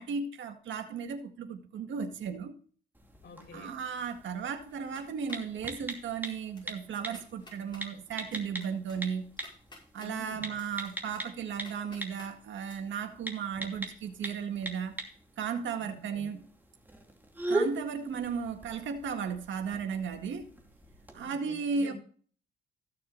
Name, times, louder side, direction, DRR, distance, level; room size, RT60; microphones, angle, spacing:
voice 1, 0.0-2.5 3.5-9.3 9.9-14.9 15.4-16.4 17.5-20.5 21.1-21.9, right 6 dB, 70° right, 6 dB, 1.8 m, -35 dB
sound 1, 2.9-21.2, right 1 dB, 10° right, 2.6 m, -41 dB
voice 2, 3.2-3.8 10.0-10.5 15.8-16.3 21.2-21.9, left 3 dB, 55° left, 2 dB, 4.6 m, -48 dB
sound 2, 4.7-5.5 5.9-6.3 6.6-6.7 7.0-7.8 8.3-10.1 10.5-12.3 12.7-12.8, left 2 dB, 20° left, 5.9 m, -53 dB
15.0 x 6.7 x 4.0 m, 0.44 s
cardioid pair, 90°, 20 cm